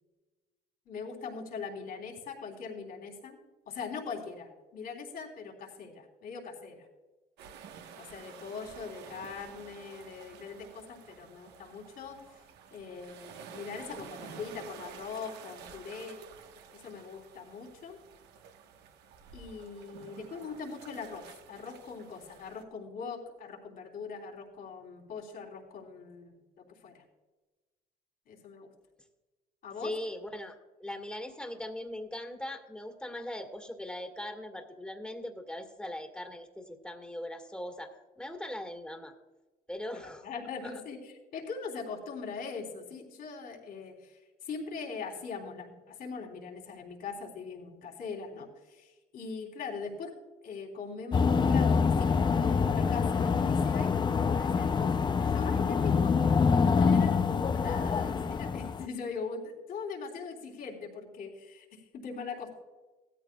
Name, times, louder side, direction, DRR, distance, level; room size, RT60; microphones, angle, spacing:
voice 1, 0.9-3.4 3.7-6.9 8.0-12.2 12.7-16.2 16.7-18.0 19.3-27.0 28.3-28.7 29.6-29.9 39.9-50.1 50.4-56.1 56.6-62.5, left 5 dB, 65° left, -1 dB, 3.5 m, -41 dB
sound 1, 7.4-22.6, right 7 dB, 80° right, 1.2 m, -50 dB
voice 2, 29.8-39.1 39.7-40.7, left 1 dB, 5° left, 4 dB, 1.7 m, -40 dB
sound 2, 51.1-58.9, left 5 dB, 25° left, 0.5 m, -26 dB
17.0 x 13.5 x 2.3 m, 1.2 s
cardioid pair, 110°, 17 cm